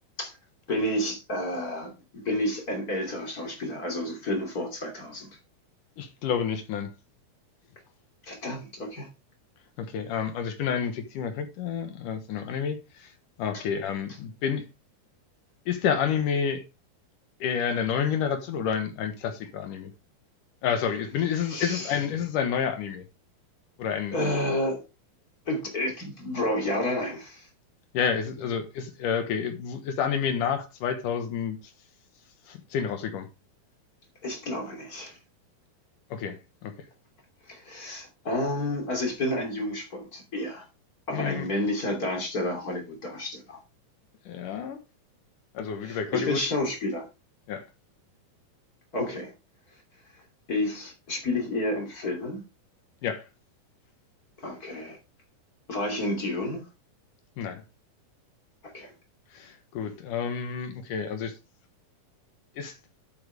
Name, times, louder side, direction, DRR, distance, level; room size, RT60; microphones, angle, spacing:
voice 1, 0.7-5.3 8.2-9.1 13.5-13.6 21.4-22.0 24.1-24.8 25.5-27.5 34.2-35.2 37.5-40.6 41.1-43.6 45.8-47.1 48.9-49.3 50.5-52.4 54.4-55.0 55.7-56.6 58.7-58.9, left 1 dB, 25° left, 2.9 m, -30 dB
voice 2, 6.0-6.9 9.8-13.1 13.4-14.6 15.7-16.6 17.4-19.9 20.6-23.0 23.8-24.2 27.9-31.6 32.5-33.3 36.1-36.4 36.6-36.7 41.1-41.5 44.3-44.8 45.5-46.4 47.5-47.6 53.0-53.2 57.4-57.6 59.3-61.3 62.6-62.7, left 7 dB, 70° left, 2.7 m, -29 dB
10.5 x 8.1 x 3.3 m
omnidirectional pair, 4.2 m